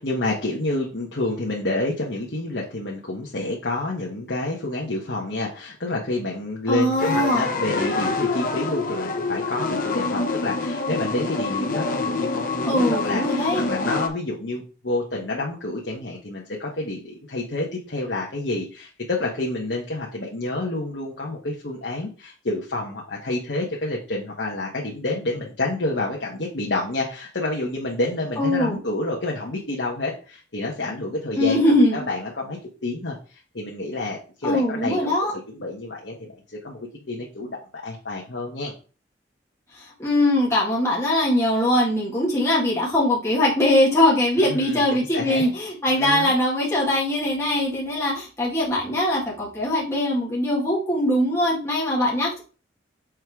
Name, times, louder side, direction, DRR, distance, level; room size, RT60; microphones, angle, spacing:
voice 1, 0.0-31.6 31.9-33.2 33.5-35.2 35.5-36.3 36.6-38.7 44.4-45.5 45.9-46.3, left 2 dB, 75° left, -2 dB, 1.3 m, -29 dB
voice 2, 6.7-7.5 12.6-13.6 28.4-28.8 31.4-32.0 34.4-35.3 39.8-52.4, left 1 dB, 15° left, -5 dB, 1.7 m, -21 dB
sound 1, 7.0-14.1, left 3 dB, 45° left, 0.8 m, -26 dB
6.4 x 3.7 x 4.7 m, 0.36 s
head